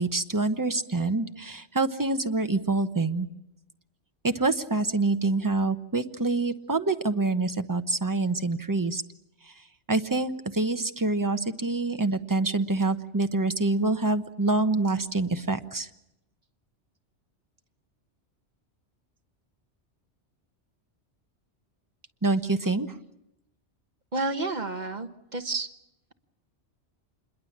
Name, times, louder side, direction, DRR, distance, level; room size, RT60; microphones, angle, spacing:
voice 1, 0.0-3.3 4.2-9.0 9.9-15.9 22.2-22.9, right 3 dB, 20° right, 8 dB, 0.9 m, -26 dB
voice 2, 24.1-25.7, right 3 dB, 40° right, 7 dB, 1.3 m, -30 dB
26.5 x 22.0 x 7.3 m, 0.84 s
omnidirectional pair, 1.2 m